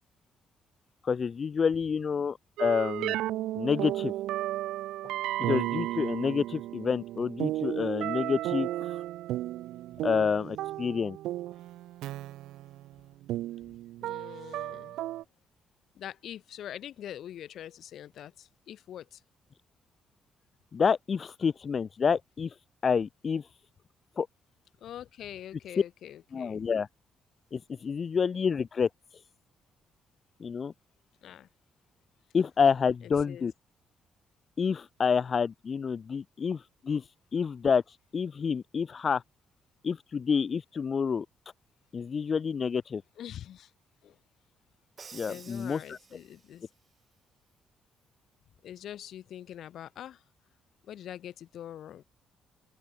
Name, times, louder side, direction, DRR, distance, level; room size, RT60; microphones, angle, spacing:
voice 1, 1.0-3.2 3.6-4.1 5.4-9.0 10.0-11.2 20.7-22.5 22.8-23.5 24.2-24.3 26.3-26.9 27.5-28.9 30.4-30.7 32.3-33.5 34.6-39.2 39.8-41.3 41.9-43.0 45.1-46.0, left 6 dB, 45° left, 0.3 m, -28 dB
sound 1, 2.6-15.2, right 15 dB, 90° right, 0.5 m, -34 dB
voice 2, 14.0-15.0 15.9-19.2 24.8-26.6 28.0-28.1 31.2-31.5 33.0-33.5 43.2-43.7 44.0-44.2 45.2-46.7 48.6-50.2 50.8-52.0, left 11 dB, 70° left, 1.3 m, -44 dB
Crash cymbal, 45.0-46.6, right 5 dB, 40° right, 2.0 m, -51 dB
open air
cardioid pair, 90°, 0 cm